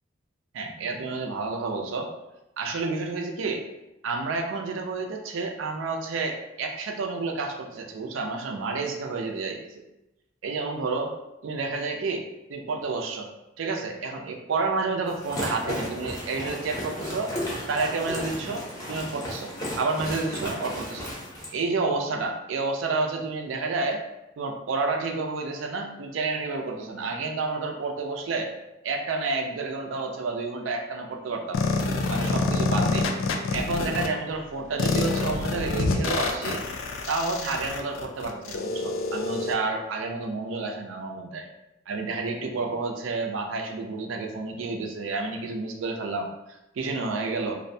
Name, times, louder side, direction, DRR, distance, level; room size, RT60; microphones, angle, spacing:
voice 1, 0.5-2.1 2.6-3.6 4.0-9.8 10.4-11.1 11.4-13.3 13.6-17.3 17.7-21.1 21.5-24.0 24.4-28.5 28.8-31.6 32.1-33.1 33.5-36.7 37.1-41.5 41.9-46.3 46.8-47.6, right 3 dB, 80° right, 2 dB, 0.4 m, -30 dB
sound 1, 15.1-21.5, equal, 20° left, 0.5 m, -34 dB
sound 2, 31.5-34.1 34.8-39.5, left 3 dB, 80° left, 0.3 m, -27 dB
2.5 x 2.1 x 2.6 m, 0.93 s
head